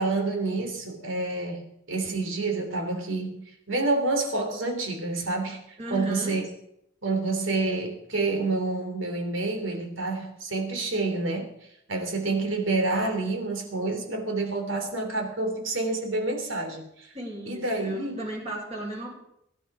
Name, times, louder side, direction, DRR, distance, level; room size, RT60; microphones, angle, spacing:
voice 1, 0.0-6.5 7.0-11.5 11.9-17.1 17.5-18.2, right 3 dB, 75° right, 4 dB, 3.5 m, -28 dB
voice 2, 5.8-6.4 17.1-19.2, equal, 30° right, -2 dB, 5.6 m, -35 dB
22.0 x 11.0 x 5.0 m, 0.76 s
head